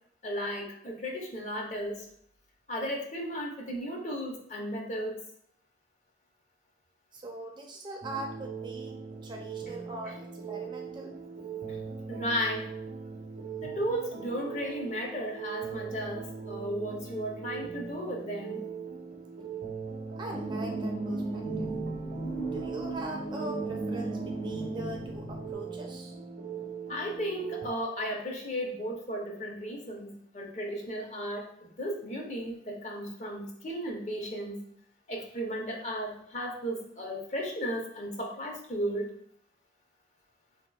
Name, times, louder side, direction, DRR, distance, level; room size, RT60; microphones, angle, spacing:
voice 1, 0.2-2.1 2.7-5.2 11.7-11.8 12.1-12.7 13.6-18.6 26.9-34.6 35.1-39.1, equal, 40° left, 0 dB, 0.6 m, -35 dB
voice 2, 7.1-11.2 20.2-21.7 22.5-26.1, right 1 dB, 25° right, 1 dB, 0.4 m, -41 dB
sound 1, 8.0-27.7, right 6 dB, 80° right, 0.7 m, -40 dB
sound 2, 20.3-25.5, right 2 dB, 80° left, 1.0 m, -35 dB
3.8 x 2.7 x 2.2 m, 0.68 s
head